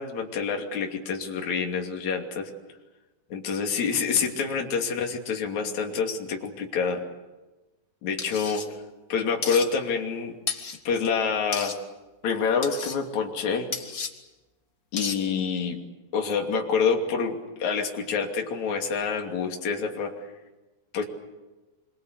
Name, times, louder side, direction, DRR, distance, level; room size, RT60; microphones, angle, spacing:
voice 1, 0.0-2.5 3.3-7.0 8.0-8.7 9.1-10.3 10.9-11.8 12.2-13.7 14.9-15.8 16.1-20.2 20.9-21.0, left 5 dB, 45° left, 2 dB, 3.8 m, -27 dB
sound 1, 8.2-8.7 9.4-9.7 10.5-10.8 11.5-11.8 12.6-13.0 13.7-14.1 15.0-15.2, left 5 dB, 90° left, 0.8 m, -32 dB
26.5 x 24.0 x 8.2 m, 1.1 s
omnidirectional pair, 4.8 m